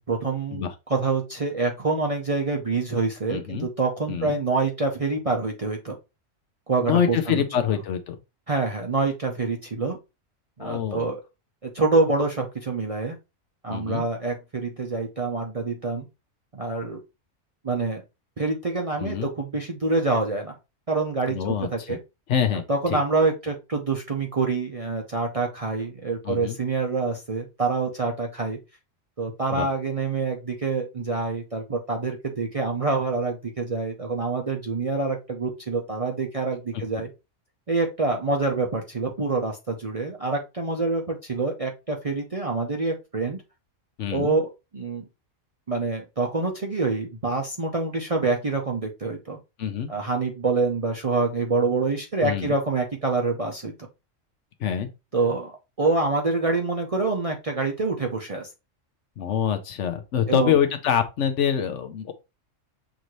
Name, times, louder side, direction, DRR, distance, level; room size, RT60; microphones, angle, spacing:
voice 1, 0.1-0.6 0.9-6.0 6.7-7.6 8.5-10.0 10.6-11.2 11.6-13.2 13.6-16.1 16.5-17.0 17.6-18.0 18.4-20.6 20.9-22.0 22.7-28.6 29.2-37.1 37.7-43.4 44.1-45.1 45.7-49.4 49.9-53.7 55.1-58.5 60.3-60.6, right 3 dB, 35° right, 0.6 m, -26 dB
voice 2, 3.3-3.7 4.1-4.4 6.8-8.2 10.6-11.1 13.7-14.0 19.0-19.3 21.3-22.0 22.3-23.0 26.2-26.6 29.5-29.7 44.0-44.3 49.6-49.9 52.2-52.6 54.6-54.9 59.2-62.1, left 8 dB, 70° left, 0.9 m, -25 dB
6.1 x 2.6 x 3.0 m
omnidirectional pair, 1.4 m